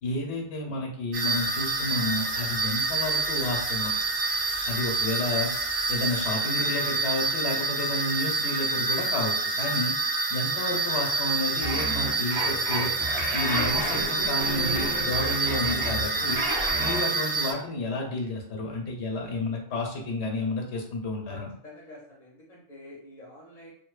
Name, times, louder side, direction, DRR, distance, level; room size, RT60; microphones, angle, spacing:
voice 1, 0.0-3.9 4.7-5.5 5.9-9.9 10.3-12.9 13.3-16.4 16.8-21.5, left 2 dB, 75° left, 1 dB, 0.9 m, -31 dB
sound 1, 1.1-17.5, right 3 dB, 80° right, 0.9 m, -28 dB
sound 2, 1.2-6.3, right 1 dB, ahead, 0.7 m, -46 dB
sound 3, 11.6-17.1, right 1 dB, 35° right, 0.5 m, -31 dB
voice 2, 21.3-23.7, left 1 dB, 45° left, -5 dB, 0.7 m, -48 dB
2.6 x 2.0 x 2.3 m, 0.63 s
omnidirectional pair, 1.1 m